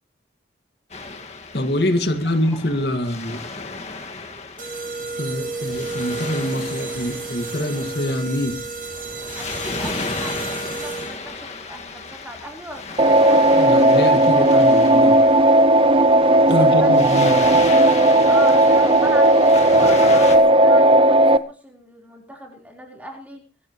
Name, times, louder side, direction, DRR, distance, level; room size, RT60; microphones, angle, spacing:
Waves surf, 0.9-20.4, left 3 dB, 40° left, 2.1 m, -34 dB
voice 1, 1.5-3.4 5.2-8.6 13.5-15.2 16.5-17.4, left 1 dB, 65° left, 6 dB, 2.1 m, -24 dB
voice 2, 3.0-3.4 9.3-13.5 16.5-17.3 18.2-23.4, right 1 dB, 10° right, 1 dB, 4.2 m, -38 dB
sound 1, 4.6-11.4, right 4 dB, 50° right, 7.9 m, -32 dB
sound 2, 13.0-21.4, right 1 dB, 30° right, 0.7 m, -14 dB
23.0 x 15.0 x 3.2 m, 0.34 s
head